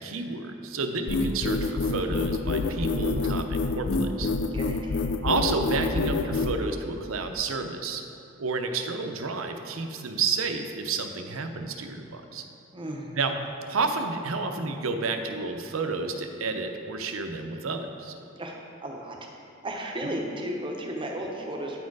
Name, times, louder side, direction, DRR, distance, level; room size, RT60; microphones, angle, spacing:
voice 1, 0.0-4.3 5.2-8.0 8.4-12.4 13.2-13.3 13.7-18.1, right 4 dB, 80° right, 6 dB, 0.6 m, -30 dB
sound 1, 1.1-6.5, left 3 dB, 55° left, 0.4 m, -26 dB
voice 2, 4.5-5.1 12.7-13.1 18.4-19.2 19.6-21.8, right 1 dB, 25° right, 0 dB, 0.8 m, -34 dB
9.1 x 4.4 x 4.7 m, 2.7 s
head